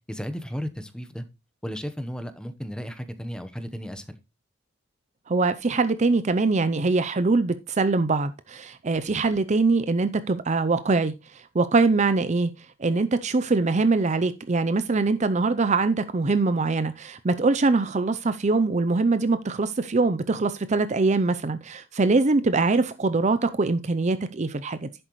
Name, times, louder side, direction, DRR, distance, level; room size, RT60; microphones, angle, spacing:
voice 1, 0.1-1.2 1.6-4.2, equal, 5° left, 0.9 m, -34 dB
voice 2, 5.3-12.5 12.8-24.9, right 3 dB, 35° right, 0.5 m, -23 dB
10.5 x 7.8 x 3.1 m
head